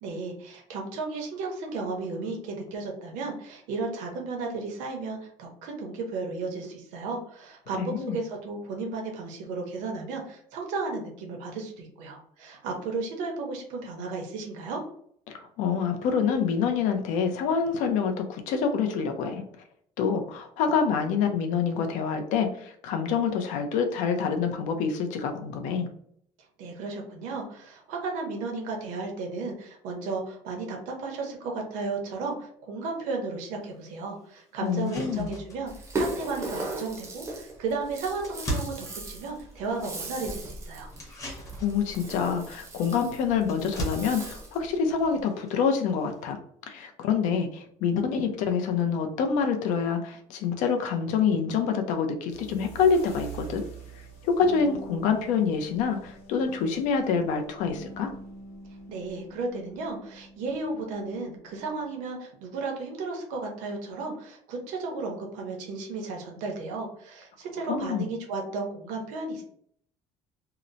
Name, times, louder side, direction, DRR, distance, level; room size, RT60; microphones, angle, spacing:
voice 1, 0.0-14.8 26.6-40.9 58.9-69.4, right 3 dB, 85° right, 1 dB, 0.8 m, -34 dB
voice 2, 7.8-8.2 15.3-19.4 20.0-25.9 34.6-35.3 41.6-46.4 46.7-53.7 54.2-58.1 67.7-68.1, left 6 dB, 80° left, 6 dB, 0.5 m, -26 dB
sound 1, 33.6-33.7 34.2-34.3 34.6-46.3, right 1 dB, 25° left, 0.8 m, -41 dB
Rattle (instrument), 35.7-44.6, right 2 dB, 20° right, 0.5 m, -37 dB
sound 2, 52.3-62.1, right 2 dB, 60° left, 1.0 m, -45 dB
2.8 x 2.0 x 2.5 m, 0.64 s
cardioid pair, 165°, 13 cm